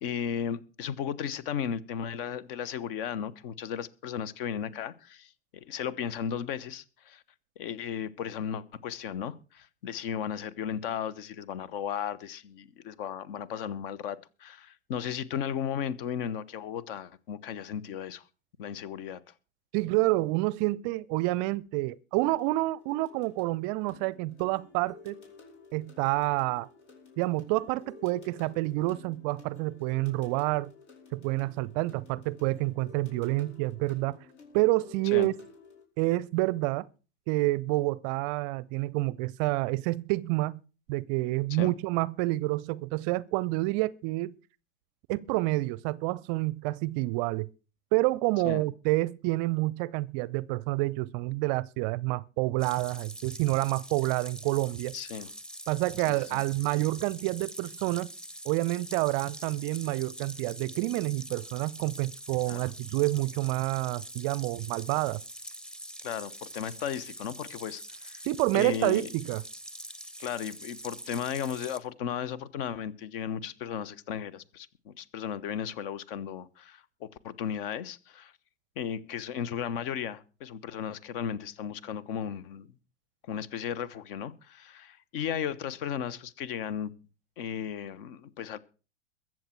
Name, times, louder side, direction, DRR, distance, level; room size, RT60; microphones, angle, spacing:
voice 1, 0.0-7.2 7.6-18.2 18.6-19.2 35.0-35.3 41.5-41.7 48.4-48.6 54.9-55.3 56.1-56.4 62.5-62.7 66.0-68.3 68.5-69.1 70.2-78.3 78.8-82.7 83.3-86.9 87.4-88.6, left 8 dB, 50° left, 1.2 m, -35 dB
voice 2, 19.7-25.2 25.7-26.7 27.2-30.7 31.1-34.2 34.5-35.3 36.0-36.9 37.3-40.6 40.9-44.3 45.1-47.5 47.9-54.9 55.7-58.1 58.4-65.2 68.3-69.4, right 20 dB, 40° right, 0.5 m, -28 dB
sound 1, 22.2-35.8, left 4 dB, 75° left, 4.8 m, -53 dB
sound 2, 52.6-71.8, right 1 dB, ahead, 0.8 m, -44 dB
22.5 x 7.6 x 4.5 m
figure-of-eight pair, 95°, 35 cm